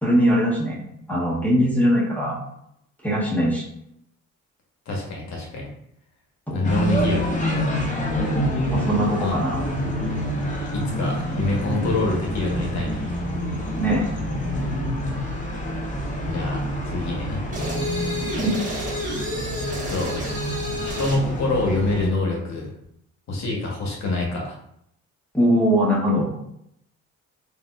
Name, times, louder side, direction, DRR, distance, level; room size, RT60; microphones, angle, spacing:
voice 1, 0.0-0.8 1.1-2.4 3.0-3.6 6.5-6.6 8.7-9.7 13.8-14.1 18.4-18.6 25.3-26.3, equal, 5° left, -5 dB, 1.1 m, -21 dB
voice 2, 4.9-5.7 6.5-7.4 9.2-9.4 10.7-13.0 16.2-17.4 19.6-20.2 20.8-22.7 23.3-24.6, left 2 dB, 65° left, -1 dB, 1.0 m, -26 dB
sound 1, 6.6-22.1, equal, 25° left, 0.7 m, -27 dB
sound 2, 17.5-21.3, left 1 dB, 25° right, 1.1 m, -30 dB
3.4 x 2.5 x 2.3 m, 0.75 s
cardioid pair, 90°, 30 cm